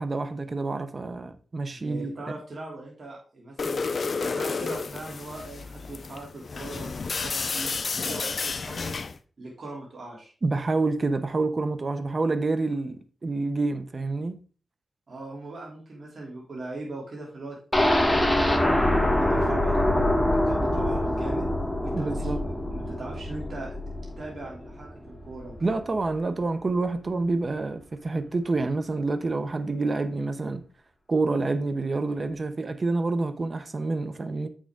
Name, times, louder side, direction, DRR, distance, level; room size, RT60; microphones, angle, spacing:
voice 1, 0.0-2.1 10.4-14.4 21.9-22.4 25.6-30.6 31.1-34.5, right 3 dB, 40° right, 0.8 m, -28 dB
voice 2, 1.7-3.8 4.2-9.0 9.4-10.3 15.1-17.6 18.3-18.7 19.1-21.5 21.8-23.8 24.2-25.7, right 2 dB, 55° right, 2.7 m, -40 dB
sound 1, 3.6-9.2, left 4 dB, 55° left, 0.5 m, -31 dB
sound 2, 17.7-25.6 25.9-26.0 26.4-26.5, left 1 dB, 5° left, 1.5 m, -25 dB
7.8 x 6.4 x 3.6 m
wide cardioid pair, 95°, 0 cm